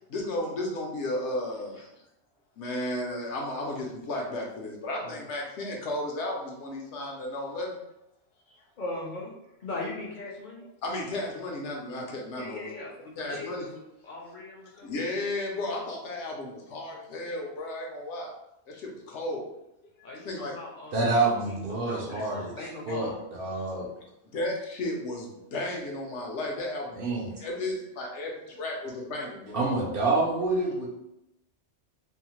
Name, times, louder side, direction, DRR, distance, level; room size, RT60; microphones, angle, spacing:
voice 1, 0.1-1.8 2.6-7.8 8.5-8.6 10.8-12.7 13.2-13.7 14.8-18.3 18.7-19.4 20.2-20.5 22.2-22.3 24.3-27.0 27.4-29.6, left 1 dB, 75° left, 0 dB, 0.9 m, -34 dB
voice 2, 8.8-9.3 9.6-10.6 12.4-13.5 14.0-14.9 20.0-21.1 21.4-21.6 21.8-23.2, left 2 dB, 50° left, -4 dB, 0.6 m, -39 dB
voice 3, 20.9-23.9 27.0-27.3 29.5-30.9, right 3 dB, 60° right, -4 dB, 0.7 m, -27 dB
2.7 x 2.0 x 2.9 m, 0.85 s
omnidirectional pair, 1.2 m